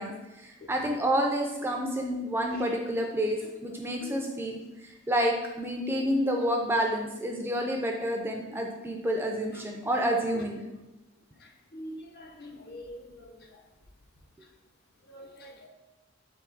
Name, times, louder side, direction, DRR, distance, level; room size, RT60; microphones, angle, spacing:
voice 1, 0.0-10.6, equal, 10° right, 2 dB, 0.3 m, -29 dB
voice 2, 11.7-13.0 15.1-15.7, equal, 50° left, 2 dB, 0.6 m, -43 dB
3.5 x 2.7 x 4.5 m, 1.0 s
head